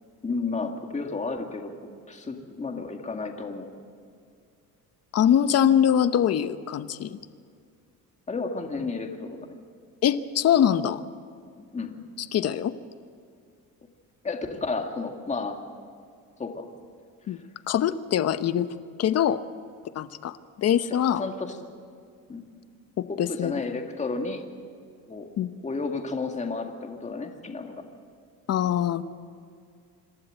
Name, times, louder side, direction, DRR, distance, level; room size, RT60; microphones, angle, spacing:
voice 1, 0.2-1.7 2.1-3.7 8.3-9.4 11.7-12.0 14.2-15.6 16.4-16.7 20.9-21.6 22.3-22.5 23.1-24.4 25.1-25.3 25.6-27.8, left 3 dB, 20° left, 3 dB, 2.1 m, -32 dB
voice 2, 5.1-7.2 10.0-11.0 12.3-12.7 17.3-17.4 17.7-18.7 19.0-19.4 19.9-21.2 23.0-23.5 25.4-25.5 28.5-29.0, left 9 dB, 45° left, 13 dB, 0.9 m, -23 dB
26.5 x 12.5 x 7.8 m, 2.2 s
cardioid pair, 120°, 34 cm